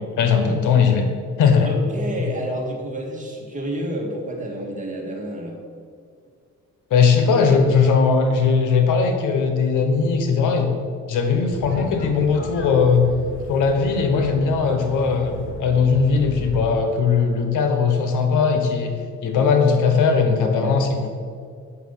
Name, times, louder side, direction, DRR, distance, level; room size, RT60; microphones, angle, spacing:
voice 1, 0.2-1.0 1.4-1.7 6.9-10.7 11.1-13.1 13.5-18.9 19.2-21.1, left 5 dB, 80° left, 5 dB, 1.3 m, -19 dB
voice 2, 1.6-5.6 20.6-20.8, right 1 dB, 25° right, -1 dB, 2.2 m, -29 dB
sound 1, 11.5-16.6, left 2 dB, 40° left, 1.5 m, -36 dB
8.5 x 6.0 x 5.7 m, 2.2 s
cardioid pair, 90°, 30 cm